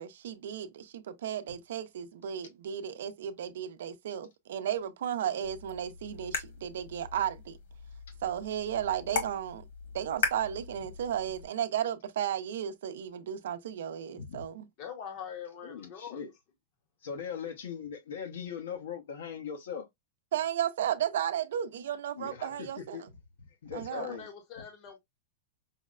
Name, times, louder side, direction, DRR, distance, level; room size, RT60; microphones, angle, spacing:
voice 1, 0.0-7.6 8.2-9.6 9.9-14.6 20.3-23.1 23.7-24.1, right 10 dB, 70° right, 0.6 m, -34 dB
sound 1, 5.4-11.5, left 5 dB, 60° left, 1.4 m, -39 dB
voice 2, 14.1-14.5 15.6-16.3 17.0-19.9 22.2-22.7 22.9-23.0 23.6-24.2, left 7 dB, 90° left, 1.0 m, -40 dB
voice 3, 14.8-16.2 23.9-25.0, left 8 dB, 30° left, 0.8 m, -42 dB
5.5 x 2.1 x 2.4 m
supercardioid pair, 180°, 0 cm